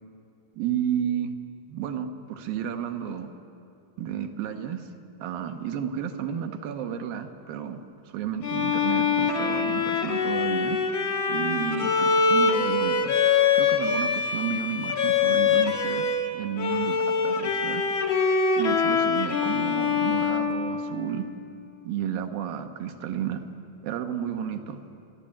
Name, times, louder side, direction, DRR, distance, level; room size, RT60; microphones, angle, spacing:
voice 1, 0.5-1.3 1.7-3.3 4.0-4.9 5.2-7.8 8.1-10.8 11.3-13.2 13.5-16.1 16.3-17.8 18.6-21.2 21.8-23.4 23.8-24.8, right 9 dB, 80° right, 6 dB, 2.8 m, -32 dB
Bowed string instrument, 8.4-16.3 16.6-21.4, left 5 dB, 60° left, 1.3 m, -24 dB
28.0 x 11.5 x 8.7 m, 2.6 s
omnidirectional pair, 4.2 m